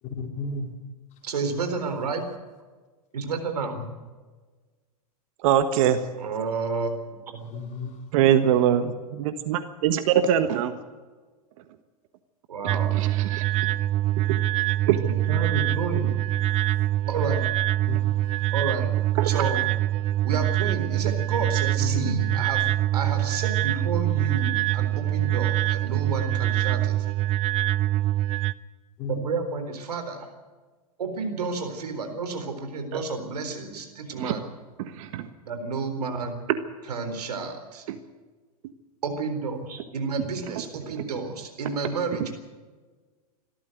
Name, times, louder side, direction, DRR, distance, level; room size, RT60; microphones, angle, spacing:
voice 1, 0.0-0.7 3.8-3.9 7.4-8.0 17.9-18.4 21.8-22.4 29.0-29.2, left 3 dB, 35° left, 2 dB, 4.6 m, -33 dB
voice 2, 1.2-2.3 3.1-3.7 6.2-7.6 12.5-12.9 15.0-16.1 17.1-17.5 18.5-18.9 19.2-19.6 20.2-22.6 22.9-27.0 29.1-30.3 31.0-34.4 35.5-36.4 36.9-37.8 39.0-42.4, right 4 dB, 80° right, 7 dB, 4.0 m, -31 dB
voice 3, 5.4-6.0 8.1-10.7 13.3-13.7 14.3-14.4 14.9-15.0 19.2-19.4 32.9-33.0 34.2-34.4 34.8-35.3 37.9-38.0 40.9-41.0, right 10 dB, 55° right, 10 dB, 1.4 m, -23 dB
sound 1, 12.7-28.5, right 14 dB, 35° right, 0.7 m, -24 dB
25.0 x 13.5 x 8.0 m, 1.4 s
hypercardioid pair, 110°, 20 cm